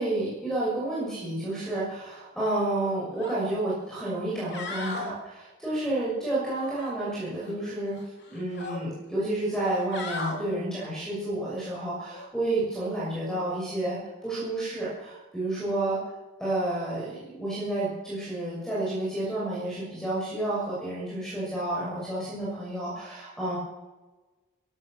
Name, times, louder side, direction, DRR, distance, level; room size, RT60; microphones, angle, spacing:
voice 1, 0.0-8.0 8.3-16.0 16.4-23.6, right 1 dB, ahead, -7 dB, 6.3 m, -30 dB
sound 1, 3.2-3.4 3.8-3.9 4.3-5.1 6.6-7.5 7.9-8.8 9.5-10.4 12.1-12.3, left 3 dB, 50° left, 3.2 m, -37 dB
16.5 x 13.0 x 6.7 m, 1.2 s
head